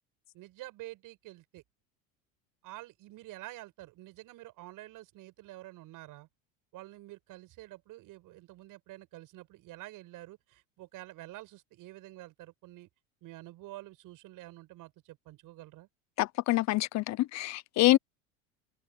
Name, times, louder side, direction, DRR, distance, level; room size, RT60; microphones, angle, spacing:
voice 1, 0.3-1.6 2.6-6.3 6.7-12.9 13.2-15.9, right 17 dB, 55° right, 8.0 m, -48 dB
voice 2, 16.2-18.0, left 17 dB, 45° left, 0.8 m, -26 dB
hypercardioid pair, 90°, 38 cm